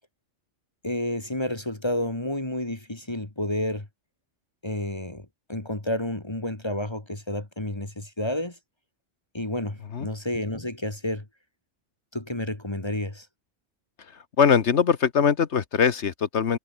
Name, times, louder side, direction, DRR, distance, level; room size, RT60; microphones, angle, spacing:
voice 1, 0.8-3.9 4.6-8.6 9.3-11.3 12.1-13.3, left 1 dB, 20° left, 2.1 m, -30 dB
voice 2, 14.1-16.6, left 7 dB, 70° left, 1.4 m, -22 dB
omnidirectional pair, 1.2 m